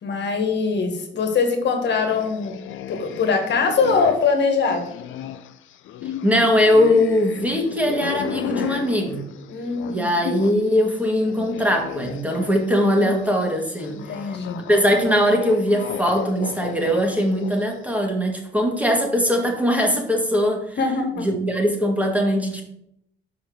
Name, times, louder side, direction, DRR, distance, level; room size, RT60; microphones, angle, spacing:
voice 1, 0.0-2.5 2.9-4.9 9.5-10.1 13.9-14.6 20.8-21.3, left 4 dB, 60° left, 4 dB, 1.6 m, -22 dB
sound 1, 1.9-10.6 10.9-17.7, left 10 dB, 80° left, 0.5 m, -34 dB
voice 2, 6.2-9.3 9.9-20.8 21.2-22.6, equal, 5° right, 2 dB, 1.7 m, -21 dB
5.2 x 5.0 x 6.3 m, 0.75 s
cardioid pair, 90°, 20 cm